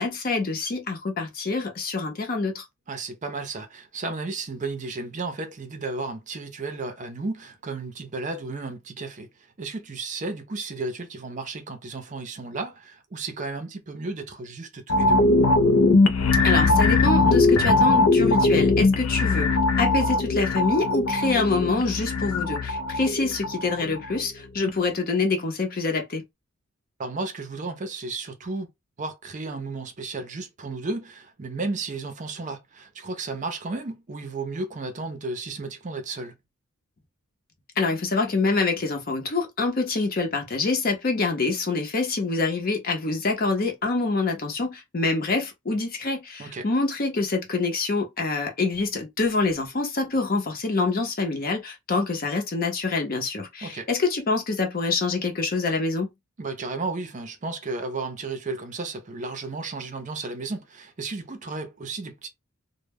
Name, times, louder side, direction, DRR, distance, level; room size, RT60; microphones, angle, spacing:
voice 1, 0.0-2.6 16.4-19.5 19.8-26.2 37.8-56.1, left 3 dB, 45° left, 0.7 m, -26 dB
voice 2, 2.9-9.3 9.6-15.2 27.0-28.7 29.0-36.3 46.4-46.7 53.6-53.9 56.4-62.3, right 3 dB, 35° right, 0.5 m, -33 dB
sound 1, 14.9-24.2 24.6-24.7, left 3 dB, 80° left, 0.4 m, -20 dB
2.1 x 2.1 x 3.3 m
head